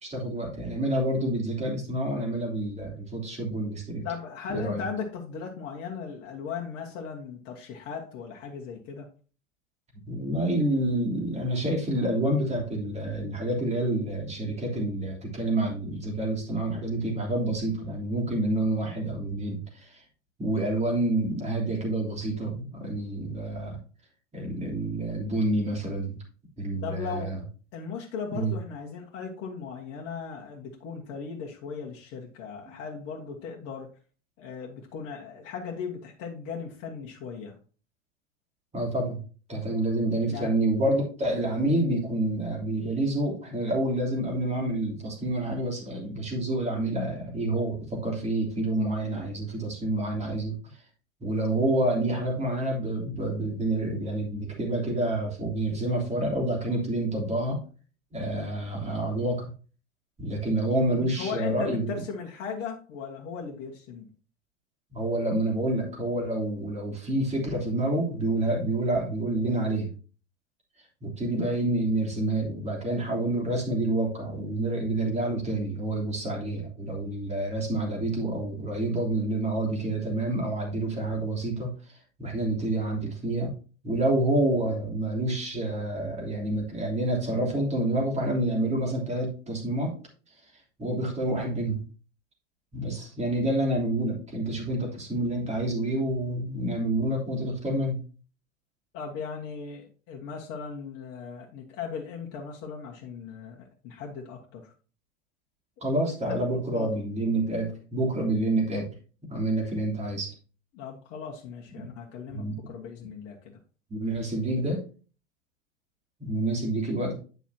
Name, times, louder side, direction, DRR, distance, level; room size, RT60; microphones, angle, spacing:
voice 1, 0.0-4.1 4.5-4.8 10.1-20.0 20.4-23.8 24.3-26.1 26.6-27.4 28.3-28.5 38.7-39.2 39.5-50.5 51.2-57.6 58.1-59.5 60.2-61.9 64.9-69.9 71.0-81.7 82.2-83.5 83.8-89.9 90.8-91.8 92.7-98.0 105.8-108.9 109.3-110.3 111.8-111.9 112.3-112.6 113.9-114.8 116.2-117.2, right 1 dB, 15° right, 0 dB, 3.2 m, -28 dB
voice 2, 4.0-9.1 26.8-27.3 27.7-33.9 34.4-37.6 40.3-40.5 60.9-64.1 98.9-104.7 106.3-106.9 110.7-113.6, left 5 dB, 40° left, -1 dB, 1.6 m, -37 dB
9.3 x 7.0 x 2.8 m, 0.37 s
figure-of-eight pair, 90°, 38 cm